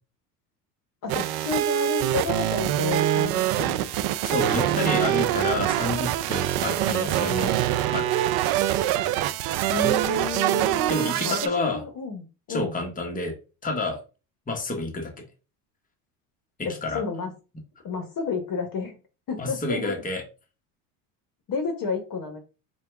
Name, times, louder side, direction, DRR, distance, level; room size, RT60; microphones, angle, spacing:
voice 1, 1.0-3.9 4.5-4.8 9.7-11.0 11.2-12.7 16.6-17.3 17.8-18.9 19.3-19.9 21.5-22.4, left 4 dB, 45° left, 5 dB, 1.1 m, -31 dB
sound 1, 1.1-11.5, right 13 dB, 55° right, 0.5 m, -24 dB
voice 2, 4.2-7.6 7.9-8.1 10.9-11.8 12.5-13.3 13.6-14.0 14.5-15.2 16.6-17.0 19.4-20.2, left 2 dB, 15° left, 3 dB, 1.2 m, -29 dB
4.6 x 2.4 x 3.4 m, 0.32 s
hypercardioid pair, 85°, 48 cm